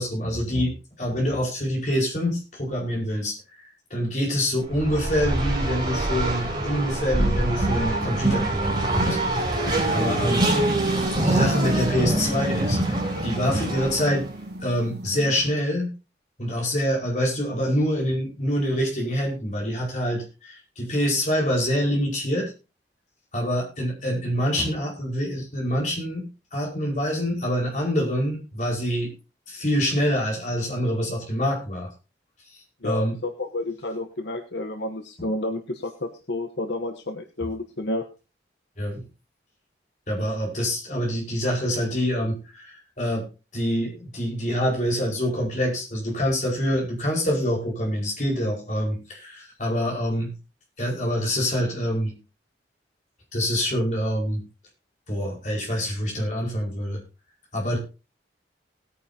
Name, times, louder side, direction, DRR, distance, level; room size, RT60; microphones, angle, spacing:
voice 1, 0.0-9.2 9.9-10.5 11.2-12.8 13.2-14.3 14.6-15.9 16.4-22.5 23.3-26.2 26.5-29.1 29.5-31.9 32.8-33.1 38.8-39.0 40.1-43.2 43.5-50.3 50.8-52.1 53.3-54.4 55.1-57.0 57.5-57.8, equal, 40° left, -1 dB, 4.9 m, -26 dB
Race car auto racing, 4.6-14.3, right 1 dB, 25° right, 4.1 m, -25 dB
sound 1, 9.9-15.5, right 1 dB, 65° right, 1.0 m, -31 dB
voice 2, 32.8-38.0, left 2 dB, 75° left, 5 dB, 1.0 m, -30 dB
19.0 x 9.5 x 2.8 m, 0.30 s
head